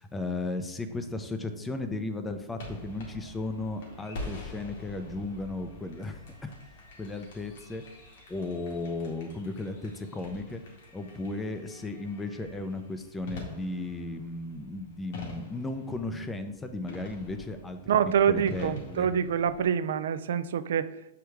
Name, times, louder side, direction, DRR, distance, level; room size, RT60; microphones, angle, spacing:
voice 1, 0.0-6.5 7.0-7.8 8.3-10.6 10.9-17.8 18.3-19.1, left 2 dB, 10° left, 8 dB, 0.4 m, -35 dB
sound 1, 2.6-19.7, left 1 dB, 70° left, 1.9 m, -46 dB
voice 2, 17.9-20.9, right 8 dB, 80° right, 13 dB, 0.3 m, -26 dB
6.1 x 4.7 x 3.4 m, 0.91 s
supercardioid pair, 160°, 0 cm